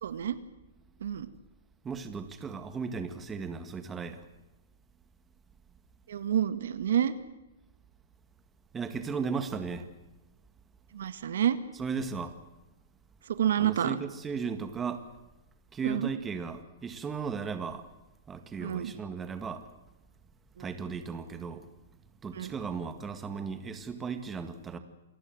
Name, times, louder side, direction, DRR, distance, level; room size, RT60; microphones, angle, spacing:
voice 1, 0.0-0.4 1.0-1.3 6.1-7.1 10.9-11.6 13.3-14.0 15.8-16.1 18.6-18.9 20.6-20.7 22.3-22.5, right 10 dB, 75° right, 12 dB, 1.9 m, -28 dB
voice 2, 1.8-4.2 8.7-9.9 11.8-12.4 13.6-15.1 15.7-17.8 18.3-19.7 20.6-21.7 22.2-24.8, right 5 dB, 15° right, 9 dB, 1.9 m, -36 dB
28.0 x 19.0 x 7.9 m, 0.97 s
hypercardioid pair, 155°, 0 cm